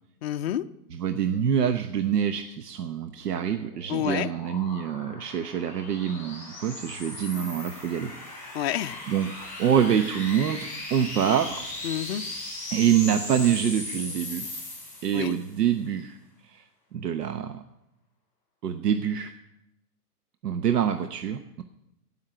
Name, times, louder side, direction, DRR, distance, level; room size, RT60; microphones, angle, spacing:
voice 1, 0.2-0.6 3.9-4.3 8.5-9.0 11.8-12.3 15.1-15.3, left 11 dB, 45° left, 7 dB, 0.5 m, -28 dB
voice 2, 0.9-8.1 9.1-11.6 12.7-14.5 15.0-16.2 16.4-16.6 16.9-17.6 18.6-19.3 20.4-21.6, right 9 dB, 80° right, 8 dB, 1.0 m, -26 dB
sound 1, 3.0-15.5, left 2 dB, 5° left, 4.7 m, -38 dB
16.0 x 5.7 x 7.8 m, 0.85 s
hypercardioid pair, 150°, 47 cm